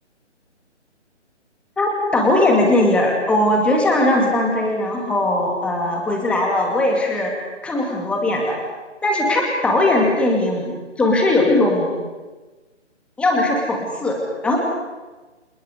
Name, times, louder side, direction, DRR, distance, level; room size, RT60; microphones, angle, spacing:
voice 1, 1.8-7.3 7.6-8.6 9.0-12.0 13.2-14.6, left 1 dB, 5° left, 0 dB, 2.3 m, -19 dB
29.0 x 28.0 x 5.0 m, 1.2 s
figure-of-eight pair, 160°, 36 cm